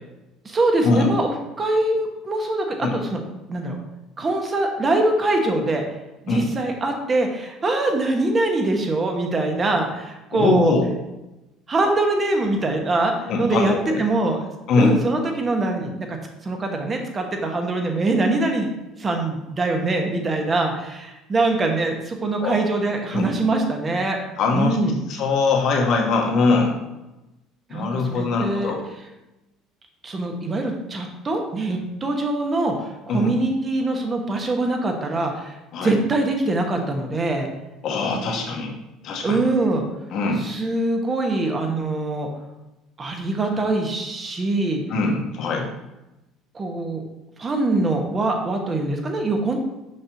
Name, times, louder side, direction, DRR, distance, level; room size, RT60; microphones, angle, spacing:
voice 1, 0.4-3.2 3.5-3.8 4.2-5.8 6.2-10.7 11.7-14.4 14.8-16.2 16.4-18.7 19.0-24.2 24.5-25.0 27.7-28.7 30.0-35.6 35.8-37.5 39.2-39.8 40.4-42.3 43.0-44.8 46.5-47.0 47.4-49.6, right 2 dB, 35° right, 3 dB, 1.4 m, -23 dB
voice 2, 10.3-10.8 13.3-14.0 14.7-14.9 22.4-22.6 23.1-23.3 24.4-24.8 25.1-26.8 27.7-28.8 33.1-33.3 35.7-35.9 37.8-38.7 39.0-39.4 40.1-40.4 44.9-45.7, left 3 dB, 60° left, 1 dB, 1.3 m, -22 dB
6.6 x 5.5 x 2.9 m, 0.98 s
supercardioid pair, 75°, 0 cm